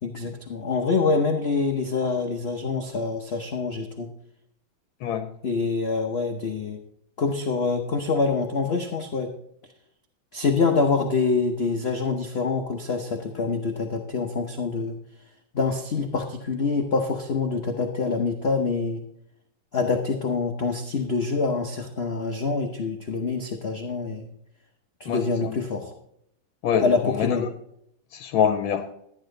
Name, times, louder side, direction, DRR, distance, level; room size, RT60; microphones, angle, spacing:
voice 1, 0.0-4.1 5.4-6.8 7.2-9.3 10.3-15.0 15.5-19.0 19.7-24.3 25.0-25.9 26.8-27.5, left 4 dB, 50° left, 4 dB, 0.8 m, -25 dB
voice 2, 5.0-5.3 25.1-25.6 26.6-27.4 28.1-28.9, left 8 dB, 80° left, 8 dB, 1.5 m, -25 dB
12.0 x 10.0 x 3.8 m, 0.74 s
omnidirectional pair, 2.2 m